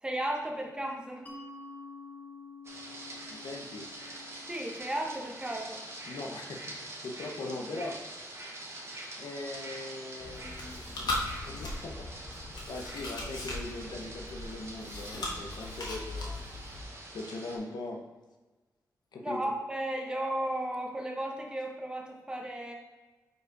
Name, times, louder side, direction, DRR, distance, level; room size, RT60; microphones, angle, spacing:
voice 1, 0.0-1.3 4.5-5.8 19.2-22.7, right 1 dB, 10° right, 1 dB, 0.9 m, -34 dB
Mallet percussion, 1.3-6.6, left 3 dB, 25° left, 0.9 m, -50 dB
sound 1, 2.6-17.6, right 1 dB, 40° right, 1.1 m, -45 dB
voice 2, 3.3-3.9 6.1-8.0 9.2-16.4 17.1-18.0 19.1-19.4, left 2 dB, 90° left, 1 dB, 0.8 m, -41 dB
Chewing mastication, 10.2-16.8, left 2 dB, 75° left, 1.4 m, -38 dB
5.2 x 4.8 x 4.7 m, 1.2 s
wide cardioid pair, 155°, 7 cm